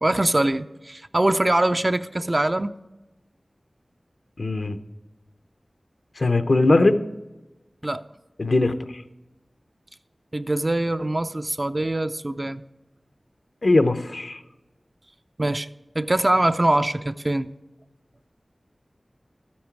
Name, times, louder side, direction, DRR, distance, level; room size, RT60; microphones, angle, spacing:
voice 1, 0.0-2.7 7.8-8.0 10.3-12.6 15.4-15.7 15.9-17.5, right 1 dB, 35° right, 10 dB, 0.5 m, -23 dB
voice 2, 4.4-4.8 6.2-7.0 8.4-9.0 13.6-14.4, left 2 dB, 70° left, 9 dB, 0.7 m, -20 dB
13.5 x 8.6 x 4.6 m, 1.0 s
wide cardioid pair, 55°, 0 cm